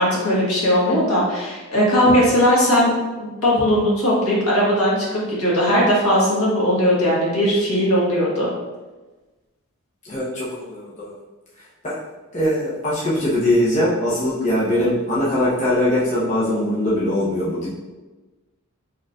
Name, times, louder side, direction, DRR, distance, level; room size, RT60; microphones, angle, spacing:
voice 1, 0.0-2.9 3.2-8.5, equal, 75° left, -6 dB, 1.4 m, -18 dB
voice 2, 10.0-11.1 11.8-12.0 12.3-17.7, left 1 dB, 35° left, -8 dB, 0.8 m, -21 dB
4.3 x 3.1 x 2.4 m, 1.2 s
head